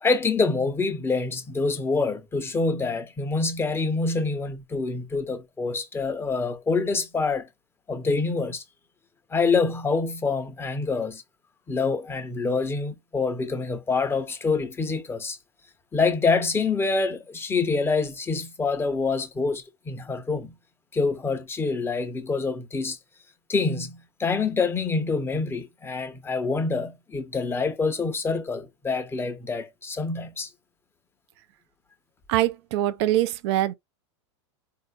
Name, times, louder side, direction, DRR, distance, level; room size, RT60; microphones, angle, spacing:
voice 1, 0.0-7.5 7.9-8.6 9.3-11.2 11.7-15.4 15.9-20.5 20.9-23.0 23.5-30.5, left 4 dB, 15° left, 0.8 m, -26 dB
voice 2, 32.3-33.7, right 14 dB, 60° right, 0.5 m, -23 dB
4.1 x 2.7 x 2.3 m
hypercardioid pair, 105°, 15 cm